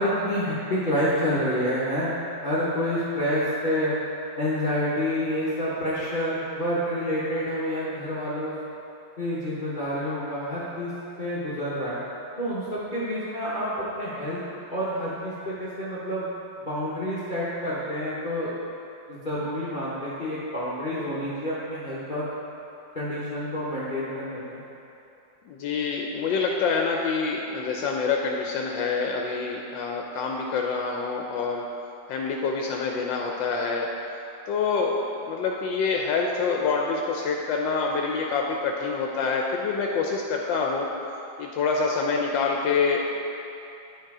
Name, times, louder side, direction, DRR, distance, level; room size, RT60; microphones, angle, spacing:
voice 1, 0.0-2.2 2.4-3.9 4.4-8.5 9.2-10.9 11.2-12.0 12.4-14.4 14.7-16.2 16.6-18.5 19.1-22.3 22.9-24.6, equal, 30° left, -10 dB, 1.0 m, -28 dB
voice 2, 25.5-31.6 32.1-33.9 34.5-34.9 35.2-40.9 41.4-43.1, left 5 dB, 80° left, 0 dB, 1.3 m, -26 dB
9.2 x 4.5 x 4.8 m, 2.8 s
omnidirectional pair, 2.0 m